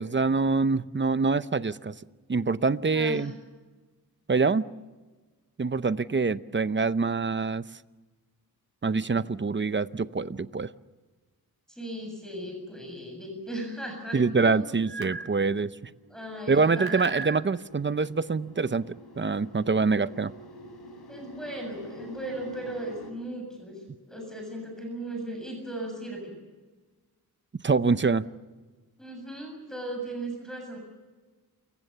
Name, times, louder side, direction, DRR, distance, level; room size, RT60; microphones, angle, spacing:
voice 1, 0.0-1.9 2.3-3.3 4.3-4.7 5.6-7.6 8.8-10.7 14.1-15.9 16.5-20.3 27.6-28.2, right 4 dB, 30° right, 14 dB, 0.7 m, -25 dB
voice 2, 2.9-3.3 11.7-14.9 16.1-17.2 21.1-26.3 29.0-30.8, right 1 dB, ahead, 1 dB, 7.4 m, -37 dB
sound 1, 14.8-15.3 16.6-17.4, right 4 dB, 75° right, 1.7 m, -35 dB
sound 2, 15.7-23.1, left 1 dB, 90° left, 4.7 m, -48 dB
28.5 x 23.0 x 6.8 m, 1.3 s
wide cardioid pair, 120°, 38 cm